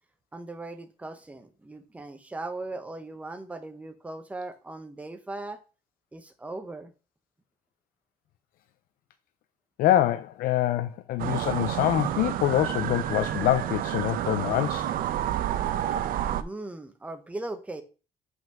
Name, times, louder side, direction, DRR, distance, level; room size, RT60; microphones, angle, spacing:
voice 1, 0.3-5.6 6.1-6.9 16.4-17.8, right 2 dB, 10° right, 0.8 m, -38 dB
voice 2, 9.8-14.9, left 13 dB, 70° left, 0.5 m, -25 dB
sound 1, 11.2-16.4, right 11 dB, 65° right, 0.6 m, -29 dB
5.6 x 5.4 x 5.9 m
cardioid pair, 180°, 16 cm